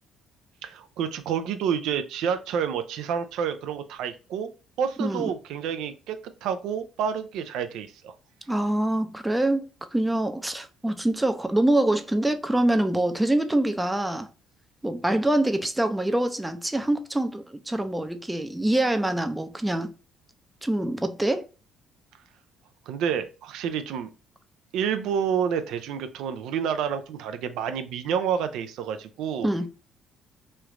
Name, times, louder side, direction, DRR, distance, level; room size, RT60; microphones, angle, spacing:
voice 1, 0.6-4.5 4.8-8.1 22.9-24.1 24.7-29.5, right 7 dB, 80° right, 0.4 m, -29 dB
voice 2, 8.5-14.3 14.8-19.9 20.6-21.5 29.4-29.7, right 1 dB, 10° right, 0.4 m, -25 dB
3.1 x 2.4 x 2.9 m
cardioid pair, 95°, 0 cm